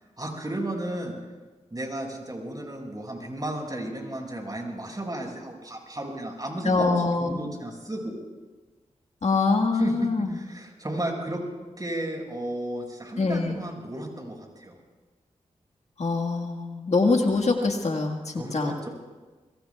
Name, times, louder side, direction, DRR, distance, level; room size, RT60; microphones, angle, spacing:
voice 1, 0.2-1.1 1.7-6.9 7.2-8.2 9.8-11.4 11.8-14.7 18.4-18.9, right 1 dB, 30° right, 1 dB, 5.8 m, -33 dB
voice 2, 6.6-7.4 9.2-10.4 13.2-13.6 16.0-18.7, left 3 dB, 55° left, 2 dB, 1.7 m, -24 dB
26.5 x 22.0 x 2.4 m, 1.2 s
cardioid pair, 40°, 13 cm